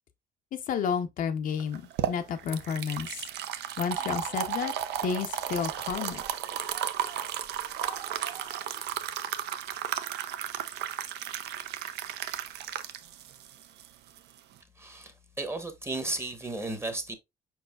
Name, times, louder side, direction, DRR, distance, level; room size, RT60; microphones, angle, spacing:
voice 1, 0.5-1.8 2.1-3.2 3.8-4.7 5.0-6.2, left 7 dB, 55° left, 0.6 m, -31 dB
sound 1, 1.6-14.6, right 10 dB, 80° right, 0.6 m, -34 dB
sound 2, 3.8-8.8, right 8 dB, 60° right, 0.9 m, -46 dB
voice 2, 14.8-17.1, right 2 dB, 15° right, 0.9 m, -34 dB
4.8 x 4.6 x 2.2 m
cardioid pair, 110°, 17 cm